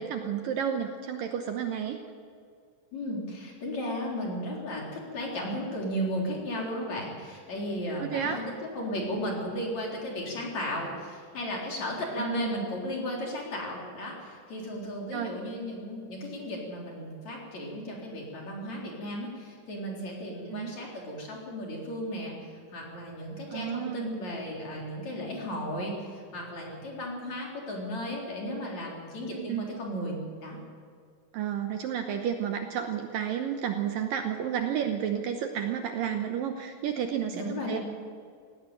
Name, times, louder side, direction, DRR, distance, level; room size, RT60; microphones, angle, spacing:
voice 1, 0.0-2.0 8.0-8.4 12.2-12.7 15.1-15.3 20.5-20.7 23.5-24.1 29.4-29.7 31.3-37.8, right 8 dB, 70° right, 5 dB, 2.4 m, -31 dB
voice 2, 2.9-8.4 8.7-22.3 22.7-30.6 37.3-37.8, equal, 45° left, -2 dB, 5.0 m, -35 dB
17.5 x 16.0 x 9.3 m, 2.2 s
omnidirectional pair, 4.7 m